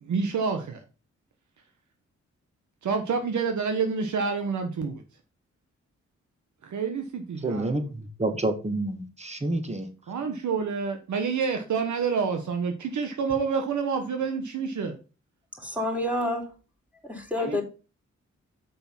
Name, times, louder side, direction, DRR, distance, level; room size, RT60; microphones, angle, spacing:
voice 1, 0.0-0.8 2.8-5.0 6.6-7.9 10.1-15.0 17.4-17.6, right 5 dB, 75° right, 6 dB, 1.2 m, -28 dB
voice 2, 7.4-9.9, right 2 dB, 20° right, 7 dB, 2.0 m, -29 dB
voice 3, 15.6-16.5 17.0-17.6, left 1 dB, 5° right, 1 dB, 3.5 m, -28 dB
6.9 x 5.2 x 5.9 m, 0.33 s
supercardioid pair, 50°, 30 cm